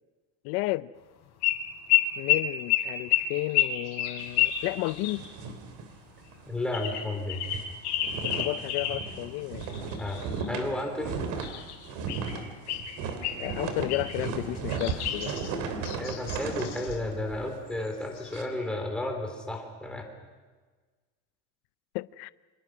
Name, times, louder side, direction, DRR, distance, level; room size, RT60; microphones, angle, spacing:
voice 1, 0.4-0.9 2.2-5.2 8.2-9.7 13.4-15.3 21.9-22.3, left 21 dB, 85° left, 0.7 m, -32 dB
sound 1, 1.4-1.6 1.9-5.2 6.7-9.0 9.6-10.6 11.4-12.4 12.7-13.5 13.9-14.2 14.8-17.0 17.9-18.0 18.2-18.5, left 12 dB, 50° left, 4.4 m, -29 dB
sound 2, 4.2-6.5 6.8-6.9 7.3-18.4, right 5 dB, 55° right, 3.2 m, -36 dB
voice 2, 6.5-7.4 10.0-11.2 16.0-20.1, left 1 dB, 5° left, 3.3 m, -33 dB
28.5 x 27.0 x 6.2 m
cardioid pair, 180°, 34 cm